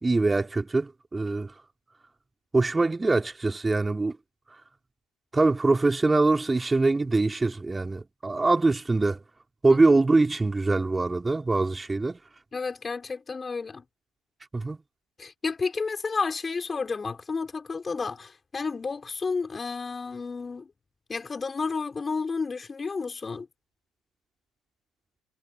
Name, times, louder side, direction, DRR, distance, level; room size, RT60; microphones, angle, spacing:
voice 1, 0.0-1.5 2.5-4.2 5.3-9.2 9.6-12.2 14.5-14.8, right 3 dB, 20° right, 2.9 m, -23 dB
voice 2, 12.5-13.8 15.2-20.7 21.1-23.5, left 4 dB, 30° left, 4.0 m, -31 dB
hypercardioid pair, 65°, 0 cm